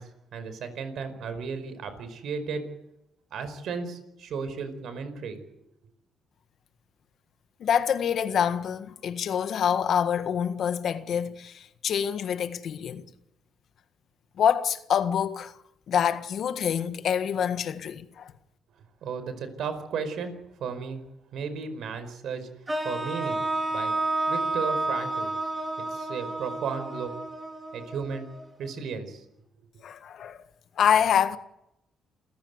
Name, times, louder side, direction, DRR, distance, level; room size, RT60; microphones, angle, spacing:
voice 1, 0.0-2.6 3.3-5.4 19.0-20.3 20.6-21.0 21.3-22.5 22.8-23.4 23.7-23.9 24.3-25.3 25.9-27.1 27.7-29.2, right 5 dB, 70° right, 4.8 m, -34 dB
voice 2, 7.6-13.0 14.4-15.5 15.9-18.3 29.8-30.4 30.8-31.4, left 8 dB, 65° left, 1.7 m, -26 dB
sound 1, 22.7-28.7, right 2 dB, 20° right, 4.3 m, -31 dB
28.5 x 15.5 x 8.1 m
cardioid pair, 90°, 0 cm